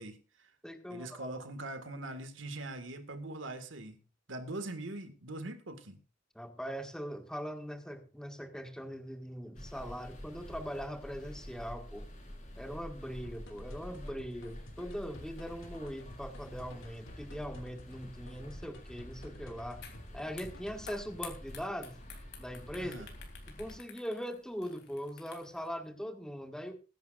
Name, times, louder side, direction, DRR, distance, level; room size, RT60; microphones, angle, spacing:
voice 1, 0.0-0.5 0.9-4.0 4.3-6.0 22.8-23.1, right 2 dB, 70° right, 8 dB, 1.9 m, -42 dB
voice 2, 0.6-1.3 6.4-12.1 12.6-19.8 20.1-22.0 22.4-22.9 23.6-26.8, equal, 5° left, 5 dB, 1.8 m, -41 dB
sound 1, 9.5-23.8, equal, 40° left, 4.5 m, -48 dB
sound 2, 13.2-20.9, left 1 dB, 80° left, 3.2 m, -53 dB
sound 3, 19.8-20.0 20.3-25.7, left 8 dB, 60° left, 3.3 m, -50 dB
21.5 x 10.5 x 2.5 m, 0.34 s
head